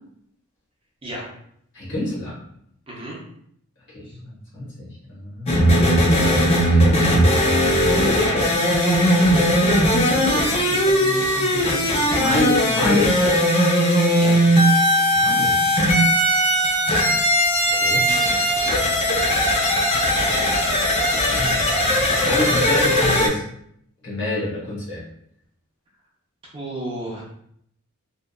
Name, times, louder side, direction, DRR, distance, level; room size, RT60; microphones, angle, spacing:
voice 1, 1.7-2.4 3.9-5.7 6.2-7.6 10.0-13.4 15.0-15.6 17.6-18.0 18.6-19.3 21.0-21.9 22.2-23.4 24.0-25.0, left 1 dB, 55° left, -6 dB, 1.0 m, -29 dB
voice 2, 2.9-3.2 4.0-4.2 8.1-8.4 14.1-14.4 26.5-27.2, right 1 dB, 25° right, -5 dB, 0.6 m, -33 dB
sound 1, 5.5-23.3, equal, 30° left, 0.4 m, -18 dB
2.8 x 2.3 x 2.2 m, 0.70 s
head